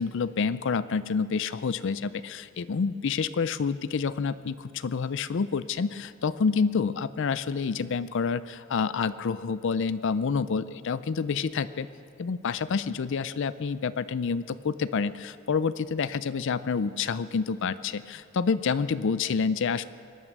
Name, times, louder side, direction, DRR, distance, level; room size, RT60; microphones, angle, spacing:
voice 1, 0.0-11.9 12.2-19.8, left 5 dB, 60° left, 15 dB, 0.4 m, -28 dB
24.0 x 9.2 x 6.6 m, 2.3 s
head